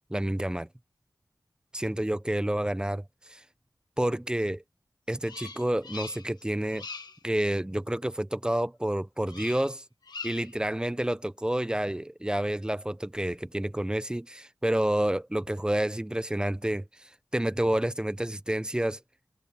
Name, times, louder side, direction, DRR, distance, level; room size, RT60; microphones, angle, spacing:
voice 1, 0.1-0.7 1.7-3.4 4.0-4.6 5.1-6.9 7.2-9.8 10.2-19.0, right 1 dB, 10° right, 0.7 m, -29 dB
Bird vocalization bird call bird song, 5.2-6.4 6.7-7.2 9.3-9.7 10.0-10.6, left 4 dB, 65° left, 1.3 m, -42 dB
wide cardioid pair, 95°, 8 cm